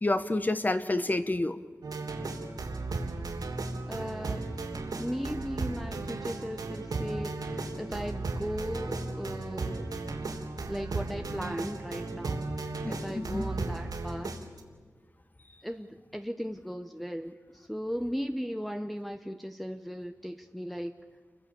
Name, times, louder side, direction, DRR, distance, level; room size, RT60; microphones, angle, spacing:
voice 1, 0.0-1.6 12.8-13.4, left 2 dB, 25° left, 10 dB, 1.0 m, -29 dB
sound 1, 1.8-14.6, right 3 dB, 85° right, 3.2 m, -35 dB
voice 2, 3.9-4.5 4.8-9.9 10.7-12.4 12.9-14.3 15.6-20.9, equal, ahead, 5 dB, 0.9 m, -37 dB
29.0 x 24.0 x 7.0 m, 1.5 s
wide cardioid pair, 90°, 6 cm